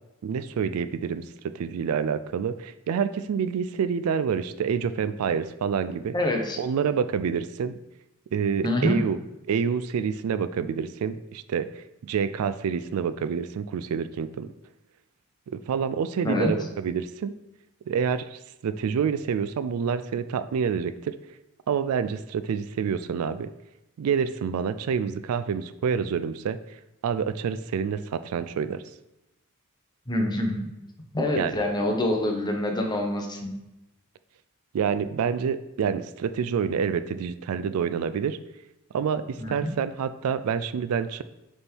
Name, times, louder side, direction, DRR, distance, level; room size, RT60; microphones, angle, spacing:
voice 1, 0.2-1.2 1.5-6.1 6.6-7.8 8.3-9.2 9.5-14.5 15.5-17.3 17.9-21.2 21.7-23.5 24.0-26.6 27.0-28.8 31.3-31.5 34.7-38.4 38.9-41.2, right 7 dB, 80° right, 13 dB, 0.3 m, -27 dB
voice 2, 6.1-6.6 8.6-9.0 16.2-16.5 30.1-30.7 31.1-33.5 39.4-39.7, left 1 dB, 20° left, 2 dB, 0.8 m, -26 dB
6.8 x 3.6 x 4.4 m, 0.96 s
head